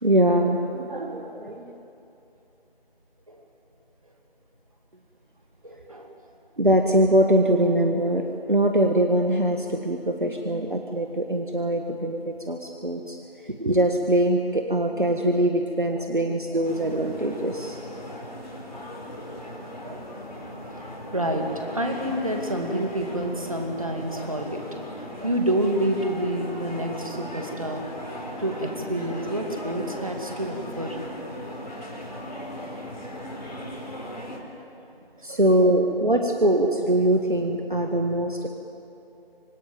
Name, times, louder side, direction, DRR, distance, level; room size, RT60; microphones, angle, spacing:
voice 1, 0.0-1.6 6.6-13.2 13.4-17.8 35.2-38.5, right 1 dB, 55° right, 3 dB, 1.7 m, -22 dB
voice 2, 5.6-6.1 16.0-16.1 16.5-16.6 19.8-20.1 21.1-21.5 21.7-24.6 25.2-27.8 28.4-31.0 35.3-35.4, right 1 dB, 35° right, 3 dB, 2.5 m, -28 dB
sound 1, 16.6-34.4, equal, 45° left, 4.3 m, -38 dB
26.0 x 19.0 x 9.2 m, 2.9 s
figure-of-eight pair, 170°, 30 cm